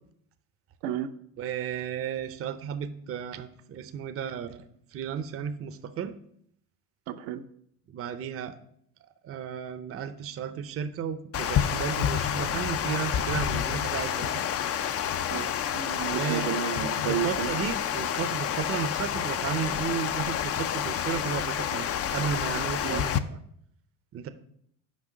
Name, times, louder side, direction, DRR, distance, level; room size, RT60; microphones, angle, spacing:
voice 1, 1.4-4.6 4.9-6.1 7.9-8.5 9.2-14.4 16.1-16.5 16.8-23.4 24.1-24.3, right 8 dB, 35° right, 10 dB, 0.6 m, -34 dB
voice 2, 7.1-7.4 15.3-17.5 22.8-23.0, right 10 dB, 75° right, 7 dB, 0.7 m, -32 dB
Water, 11.3-23.2, left 9 dB, 35° left, 0.4 m, -29 dB
6.2 x 5.0 x 5.0 m, 0.68 s
supercardioid pair, 90°, 41 cm